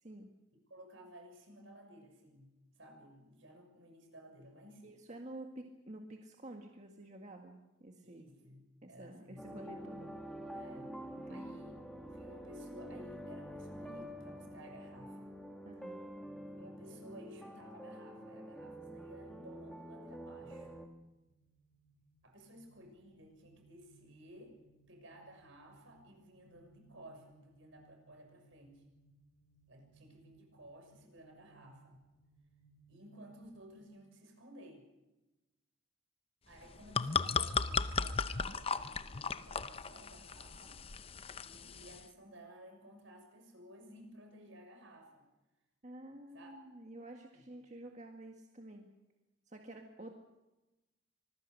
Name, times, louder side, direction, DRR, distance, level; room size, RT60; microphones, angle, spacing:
voice 1, 0.5-5.0 8.0-9.5 10.5-11.8 12.1-15.3 16.4-20.7 22.2-24.6 24.9-28.8 29.7-32.0 32.9-34.9 36.5-40.8 41.4-45.3 46.3-46.5 47.3-47.4, equal, 70° right, 4 dB, 6.7 m, -56 dB
voice 2, 4.8-8.3 8.8-10.1 11.3-11.6 15.7-16.0 45.8-48.9 49.5-50.1, right 1 dB, 35° right, 3 dB, 1.8 m, -50 dB
sound 1, 9.4-20.9, equal, ahead, 1.8 m, -47 dB
sound 2, 21.1-33.8, right 4 dB, 75° left, 2.6 m, -67 dB
sound 3, 36.6-42.0, left 5 dB, 30° left, 0.7 m, -36 dB
26.0 x 21.0 x 6.6 m, 1.0 s
head